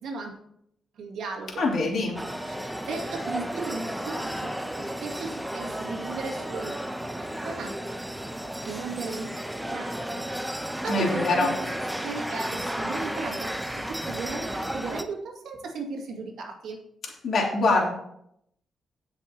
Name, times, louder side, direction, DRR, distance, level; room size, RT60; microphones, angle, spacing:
voice 1, 0.0-0.4 1.0-1.7 2.4-4.5 4.8-6.8 7.2-7.7 8.6-10.3 10.8-11.5 12.0-16.8, right 4 dB, 80° right, 2 dB, 2.1 m, -36 dB
voice 2, 1.6-2.2 10.9-11.5 17.2-17.9, left 3 dB, 65° left, -1 dB, 3.1 m, -24 dB
sound 1, 2.1-15.0, right 1 dB, 5° right, 0.8 m, -33 dB
18.0 x 6.2 x 2.9 m, 0.73 s
cardioid pair, 80°, 0 cm